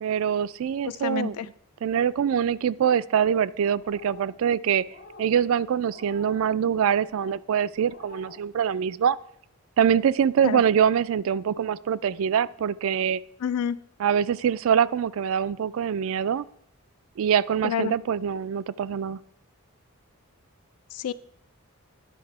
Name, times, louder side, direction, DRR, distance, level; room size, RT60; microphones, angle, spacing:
voice 1, 0.0-1.5 1.8-4.8 5.2-9.2 9.8-13.2 14.0-16.4 17.2-19.2, right 8 dB, 65° right, 17 dB, 0.3 m, -24 dB
voice 2, 1.0-1.5 10.4-10.6 13.4-13.8 17.6-17.9 20.9-21.1, left 8 dB, 90° left, 15 dB, 0.4 m, -28 dB
sound 1, 3.8-4.4 4.9-5.3 5.9-6.4 7.0-7.4 7.8-8.4, left 3 dB, 60° left, 1.7 m, -47 dB
10.5 x 5.5 x 4.7 m, 0.69 s
head